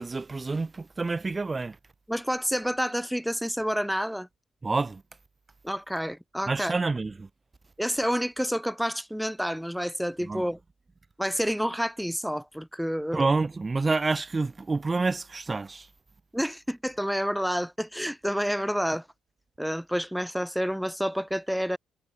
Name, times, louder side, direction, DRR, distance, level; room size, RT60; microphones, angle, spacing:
voice 1, 0.0-1.8 4.6-5.0 6.5-7.3 10.2-10.4 13.1-15.9, right 3 dB, 25° right, 0.6 m, -28 dB
voice 2, 2.1-4.3 5.6-6.7 7.8-10.6 11.2-13.2 16.3-19.1 19.6-21.8, equal, ahead, 2.6 m, -29 dB
cardioid pair, 90°, 0 cm